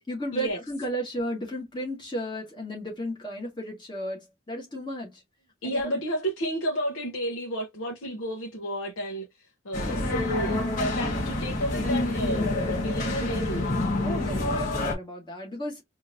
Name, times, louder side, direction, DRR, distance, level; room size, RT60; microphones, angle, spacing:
voice 1, 0.1-5.2 5.6-6.0 14.0-15.8, equal, 25° left, 1.7 m, -34 dB
voice 2, 5.6-9.3 9.6-13.9, equal, 85° left, 0.9 m, -31 dB
sound 1, 9.7-14.9, left 2 dB, 45° left, 1.5 m, -27 dB
4.4 x 2.8 x 2.6 m
head